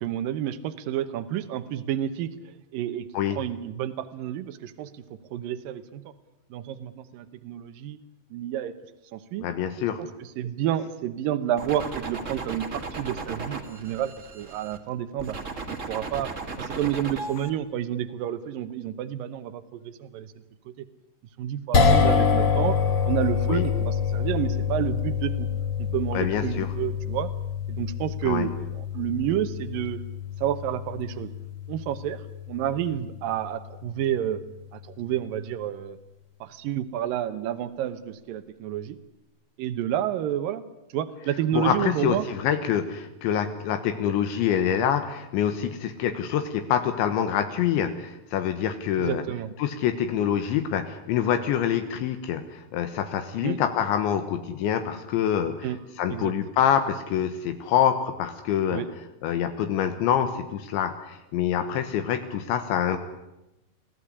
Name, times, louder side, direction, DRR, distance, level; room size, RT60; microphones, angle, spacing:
voice 1, 0.0-2.3 2.7-5.0 5.3-6.0 6.5-8.0 8.3-8.7 9.1-9.5 10.0-15.4 15.9-20.3 20.7-20.9 21.4-22.8 23.0-25.5 25.9-27.3 27.7-30.0 30.4-31.3 31.7-34.4 34.7-36.0 36.4-39.0 39.6-40.6 40.9-42.3 49.0-49.5 53.4-53.6 55.6-55.8 56.1-56.3 58.7-58.9, right 11 dB, 85° right, 12 dB, 2.0 m, -30 dB
voice 2, 9.4-10.0 23.5-23.7 26.1-26.7 28.2-28.5 41.5-49.2 49.6-55.7 56.0-58.8 59.2-63.0, left 9 dB, 75° left, 8 dB, 3.5 m, -26 dB
sound 1, 11.6-14.8 15.2-17.5, right 3 dB, 60° right, 0.7 m, -36 dB
sound 2, 21.7-34.0, left 6 dB, 40° left, 2.3 m, -26 dB
23.5 x 16.5 x 9.9 m, 0.94 s
omnidirectional pair, 5.5 m